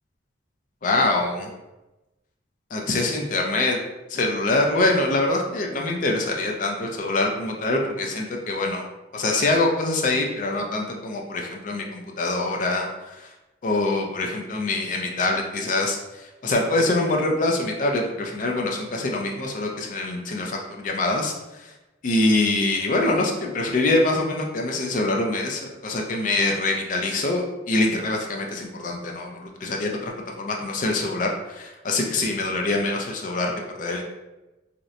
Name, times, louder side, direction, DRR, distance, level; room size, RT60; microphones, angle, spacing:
voice 1, 0.8-1.5 2.7-3.8 4.1-8.8 9.1-13.3 13.6-21.7 22.0-30.1 30.4-33.5 33.8-34.0, left 2 dB, 40° left, 1 dB, 0.4 m, -24 dB
2.8 x 2.0 x 2.4 m, 1.0 s
head